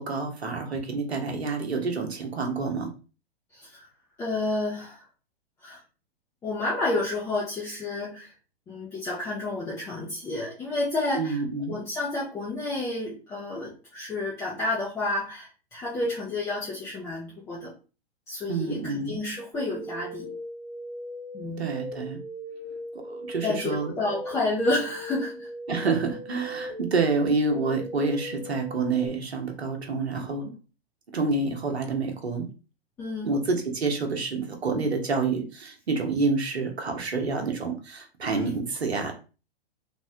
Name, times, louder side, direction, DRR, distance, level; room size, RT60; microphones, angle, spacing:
voice 1, 0.0-2.9 11.1-11.7 18.5-19.2 21.6-22.2 23.1-23.9 25.7-30.5 31.1-32.5 33.2-39.2, right 4 dB, 90° right, 3 dB, 0.9 m, -28 dB
voice 2, 3.5-3.9 4.2-5.0 5.6-5.8 6.4-8.3 8.7-11.4 11.7-17.7 18.3-20.3 21.3-21.7 23.4-25.5 33.0-33.3 38.3-38.5, left 2 dB, 10° left, -6 dB, 0.4 m, -30 dB
sound 1, 19.5-29.1, equal, 20° right, 0.9 m, -39 dB
3.4 x 2.1 x 2.7 m, 0.34 s
hypercardioid pair, 120°, 31 cm